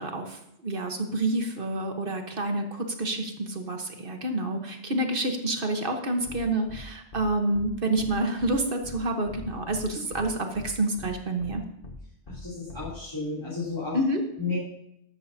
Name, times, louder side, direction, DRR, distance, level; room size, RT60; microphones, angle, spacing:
voice 1, 0.0-11.6 13.9-14.2, right 1 dB, 50° right, 4 dB, 1.4 m, -28 dB
sound 1, 6.3-6.4 6.7-6.8 7.1-7.2 7.5-7.7 8.0-8.1 8.4-8.5 8.8-9.0 9.3-9.8 10.1-10.2 10.5-10.7 11.0-11.1 11.4-11.5 11.8-12.0 12.3-12.4 12.7-12.9, left 4 dB, 50° left, 1.3 m, -42 dB
voice 2, 12.3-14.0 14.4-14.6, left 4 dB, 20° left, -9 dB, 3.9 m, -32 dB
14.0 x 12.0 x 2.8 m, 0.78 s
omnidirectional pair, 1.2 m